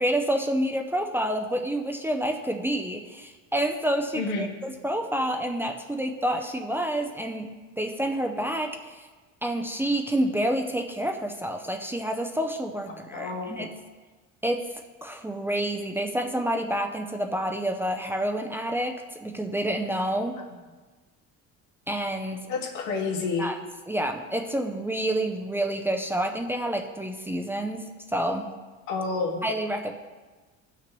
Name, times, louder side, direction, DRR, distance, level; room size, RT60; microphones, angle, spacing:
voice 1, 0.0-7.5 7.8-9.1 9.4-13.7 14.4-14.7 15.0-20.4 21.9-22.4 23.4-23.6 23.9-28.5 29.4-29.9, right 1 dB, 5° right, 4 dB, 0.4 m, -28 dB
voice 2, 4.1-4.5 12.9-13.7 22.5-23.5 28.9-29.4, left 4 dB, 85° left, 0 dB, 1.8 m, -29 dB
16.5 x 6.0 x 3.0 m, 1.3 s
cardioid pair, 150°, 30 cm